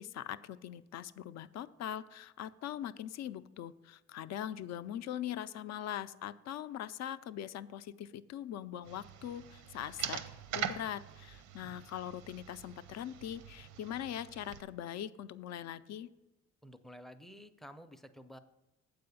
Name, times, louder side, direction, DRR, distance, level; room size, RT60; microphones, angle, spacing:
voice 1, 0.0-10.2 10.5-16.1, left 10 dB, 60° left, 14 dB, 0.4 m, -41 dB
sound 1, 8.9-14.6, right 9 dB, 90° right, 0.6 m, -43 dB
voice 2, 16.6-18.4, equal, ahead, 9 dB, 0.5 m, -51 dB
7.8 x 4.8 x 6.8 m, 1.0 s
cardioid pair, 90°, 30 cm